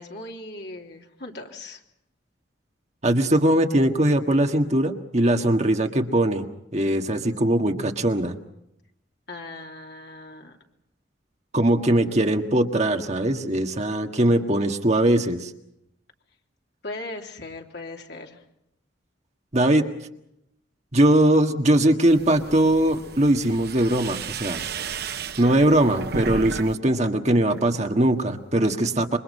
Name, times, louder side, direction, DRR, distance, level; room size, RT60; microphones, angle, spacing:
voice 1, 0.0-1.8 9.3-10.6 16.8-18.4, left 2 dB, 60° left, 2 dB, 3.1 m, -38 dB
voice 2, 3.0-6.5 6.7-8.4 11.5-15.5 19.5-19.9 20.9-24.6 25.4-29.2, right 1 dB, 35° right, 4 dB, 1.6 m, -21 dB
sound 1, 22.1-26.7 27.0-27.7, right 5 dB, 55° right, 0.8 m, -34 dB
27.5 x 24.0 x 5.5 m, 0.79 s
head